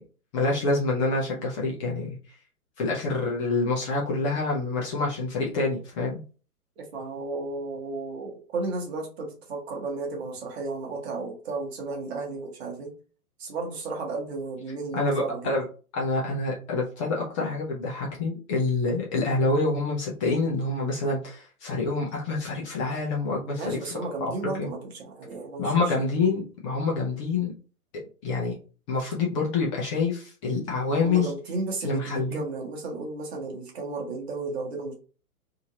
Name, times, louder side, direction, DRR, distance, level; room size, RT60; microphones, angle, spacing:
voice 1, 0.3-2.2 2.8-6.2 14.9-15.6 15.9-23.9 24.2-24.7 25.6-27.5 28.2-28.5 28.9-31.3 31.8-32.4, left 3 dB, 20° left, -2 dB, 0.7 m, -27 dB
voice 2, 6.8-12.9 13.4-15.5 23.6-26.0 31.0-34.9, right 3 dB, 45° right, 1 dB, 1.1 m, -33 dB
2.8 x 2.7 x 2.8 m, 0.36 s
figure-of-eight pair, 120°, 45 cm